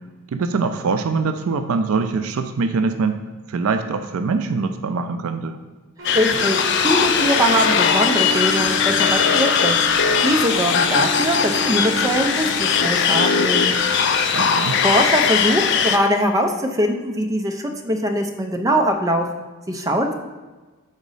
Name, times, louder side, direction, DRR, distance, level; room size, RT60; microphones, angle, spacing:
voice 1, 0.3-3.2 3.5-5.6 14.3-14.8, right 4 dB, 75° right, 8 dB, 0.4 m, -23 dB
sound 1, 6.0-16.0, left 6 dB, 55° left, 0.4 m, -19 dB
sound 2, 6.0-14.0, equal, 55° right, 1.0 m, -32 dB
voice 2, 6.1-6.6 6.8-9.8 10.2-13.7 14.8-20.1, equal, 15° right, 3 dB, 0.5 m, -22 dB
5.1 x 4.0 x 5.4 m, 1.3 s
head